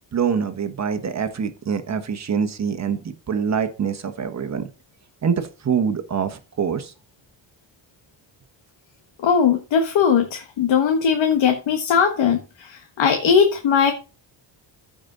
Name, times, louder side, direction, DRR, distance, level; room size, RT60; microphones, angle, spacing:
voice 1, 0.1-4.6 5.2-6.9, right 6 dB, 35° right, 9 dB, 1.2 m, -25 dB
voice 2, 9.2-12.7 13.0-13.9, left 7 dB, 80° left, 5 dB, 1.4 m, -19 dB
14.5 x 5.2 x 3.9 m, 0.32 s
wide cardioid pair, 155°, 45 cm